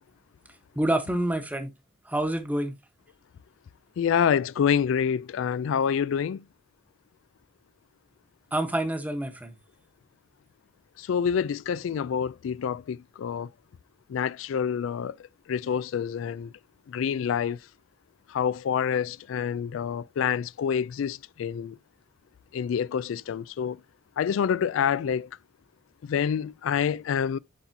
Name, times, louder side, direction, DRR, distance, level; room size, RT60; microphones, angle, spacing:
voice 1, 0.7-1.7 2.0-2.7 8.5-9.5, right 1 dB, 10° right, 1.1 m, -27 dB
voice 2, 4.0-6.4 11.0-13.5 14.1-15.2 15.5-16.5 16.9-17.6 18.3-21.8 22.5-23.8 24.2-25.3 26.0-27.4, left 7 dB, 80° left, 0.3 m, -27 dB
10.0 x 4.1 x 2.7 m
head